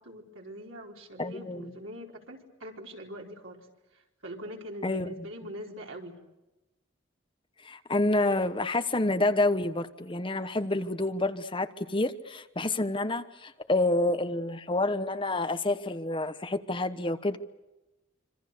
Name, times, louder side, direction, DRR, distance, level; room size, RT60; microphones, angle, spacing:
voice 1, 0.0-3.7 3.9-6.2, equal, 90° right, 4.4 m, -43 dB
voice 2, 1.2-1.7 4.8-5.1 7.6-17.4, left 2 dB, 25° left, 1.1 m, -28 dB
26.0 x 26.0 x 6.8 m
head